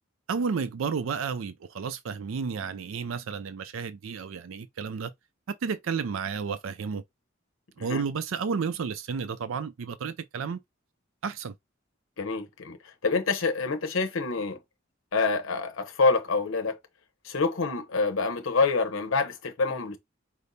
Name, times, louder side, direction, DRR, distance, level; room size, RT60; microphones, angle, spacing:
voice 1, 0.3-5.1 5.5-7.0 7.8-10.6 11.2-11.5, right 5 dB, 85° right, 0.4 m, -32 dB
voice 2, 12.2-14.6 15.1-16.8 17.2-20.0, left 4 dB, 85° left, 0.8 m, -27 dB
5.1 x 2.0 x 4.1 m
head